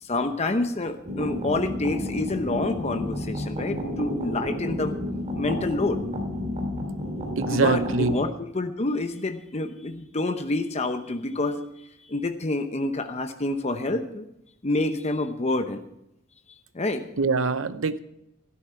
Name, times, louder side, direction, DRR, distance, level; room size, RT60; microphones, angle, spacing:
voice 1, 0.0-4.9 5.3-6.0 7.5-14.3 14.6-15.8 16.7-17.0, left 2 dB, 30° left, 7 dB, 0.8 m, -28 dB
sound 1, 1.0-8.2, left 1 dB, 35° right, 2.4 m, -31 dB
voice 2, 7.4-8.1 17.2-18.0, right 4 dB, 65° right, 13 dB, 0.7 m, -24 dB
14.0 x 12.5 x 4.5 m, 0.81 s
head